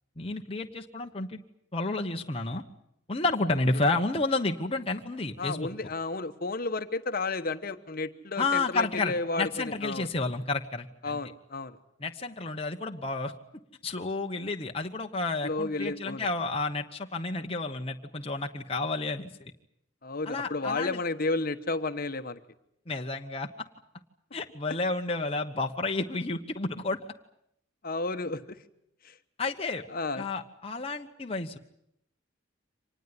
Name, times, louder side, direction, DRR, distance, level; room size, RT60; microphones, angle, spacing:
voice 1, 0.2-1.4 1.7-2.6 3.1-5.7 8.4-11.2 12.0-13.3 13.8-19.5 20.3-21.0 22.9-23.5 24.3-27.0 29.4-29.8 30.2-31.6, left 3 dB, 30° left, 3 dB, 1.1 m, -31 dB
voice 2, 5.4-10.1 11.0-11.8 15.4-16.3 20.0-22.4 25.2-25.3 27.8-28.6 29.0-29.2 29.9-30.2, left 3 dB, 45° left, 9 dB, 1.2 m, -32 dB
25.5 x 19.5 x 9.7 m, 0.75 s
head